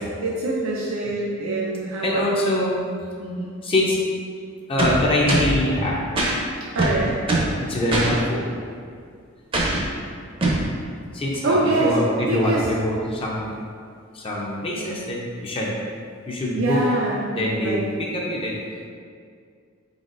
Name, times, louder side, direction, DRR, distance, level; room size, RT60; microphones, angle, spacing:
voice 1, 0.2-2.5 3.2-3.5 6.7-7.2 11.4-12.0 12.3-12.7 16.5-17.3 17.6-17.8, right 2 dB, 75° right, -4 dB, 0.5 m, -24 dB
voice 2, 2.0-2.8 3.6-4.0 4.7-5.9 7.7-8.5 11.1-13.5 14.1-15.7 16.3-16.8 17.3-18.6, left 1 dB, 25° left, -3 dB, 0.5 m, -24 dB
sound 1, 4.8-5.6 6.2-6.3 6.8-7.6 7.9-8.1 9.5-9.9 10.4-10.7, right 2 dB, 25° right, 0.6 m, -21 dB
4.0 x 3.8 x 2.5 m, 2.2 s
head